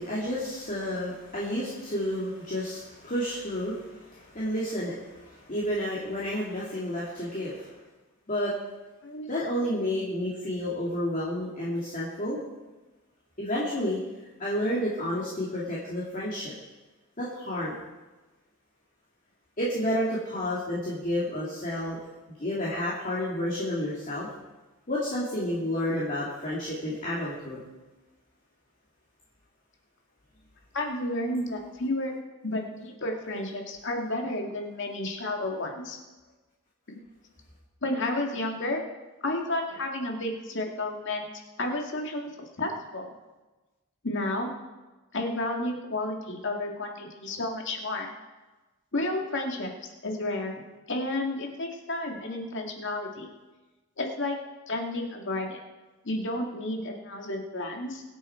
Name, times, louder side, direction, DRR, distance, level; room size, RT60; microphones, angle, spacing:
voice 1, 0.0-7.8 8.3-8.5 9.3-12.4 13.4-14.0 14.4-16.5 17.2-17.8 19.6-22.0 22.3-24.3 24.9-27.7, equal, 40° left, -7 dB, 2.7 m, -30 dB
voice 2, 30.7-32.1 32.4-36.0 36.9-37.0 37.8-38.8 39.2-41.3 41.6-43.1 44.0-44.5 45.1-48.1 48.9-49.7 50.0-50.6 50.9-53.3 54.0-54.4 54.7-55.6 56.0-58.0, left 1 dB, 60° left, 2 dB, 2.2 m, -31 dB
23.5 x 8.3 x 4.5 m, 1.2 s
head